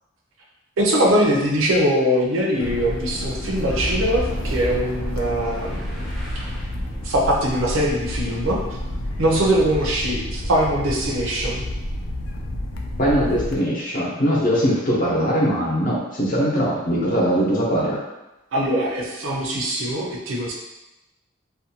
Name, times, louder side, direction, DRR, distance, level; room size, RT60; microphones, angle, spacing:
voice 1, 0.8-5.8 7.0-8.6 9.2-11.6 18.5-20.5, equal, 85° right, -1 dB, 0.6 m, -22 dB
sound 1, 2.6-13.6, left 1 dB, 75° left, 0.4 m, -30 dB
Boom, 3.6-10.2, equal, ahead, 0.5 m, -33 dB
voice 2, 13.0-18.0, equal, 45° left, -5 dB, 0.7 m, -21 dB
2.5 x 2.2 x 2.7 m, 1.0 s
head